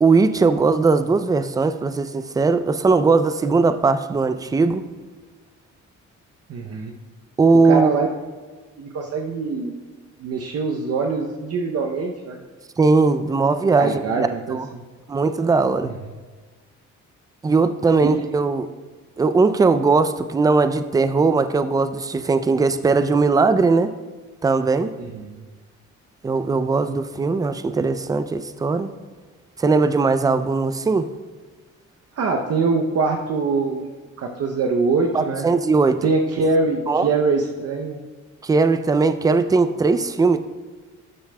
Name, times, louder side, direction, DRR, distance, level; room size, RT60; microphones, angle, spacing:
voice 1, 0.0-4.8 7.4-7.9 12.8-14.7 15.1-15.9 17.4-18.7 19.2-23.9 24.4-24.9 26.2-28.9 29.6-31.1 35.1-36.0 36.9-37.1 38.4-40.4, right 4 dB, 15° right, 11 dB, 0.3 m, -19 dB
voice 2, 6.5-7.0 7.6-8.1 8.8-9.7 10.2-12.4 13.8-14.8 18.0-18.2 25.0-25.4 32.2-33.9 34.2-35.5 36.0-38.0, right 4 dB, 55° right, 2 dB, 0.7 m, -23 dB
12.0 x 6.9 x 2.2 m, 1.3 s
cardioid pair, 90°, 30 cm